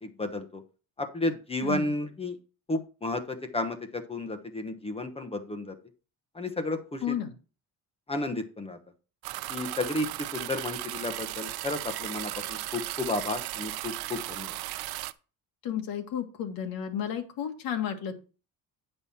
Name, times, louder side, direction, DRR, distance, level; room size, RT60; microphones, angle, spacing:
voice 1, 0.0-0.6 1.0-2.4 2.7-5.7 6.3-7.1 8.1-8.8 9.5-10.1 10.3-14.6, left 2 dB, 15° left, 7 dB, 1.1 m, -32 dB
voice 2, 1.6-2.0 7.0-7.3 15.6-18.1, left 9 dB, 65° left, 5 dB, 1.9 m, -32 dB
sound 1, 9.2-15.1, right 17 dB, 75° right, 0.6 m, -36 dB
10.0 x 5.5 x 4.3 m, 0.34 s
cardioid pair, 150°, 37 cm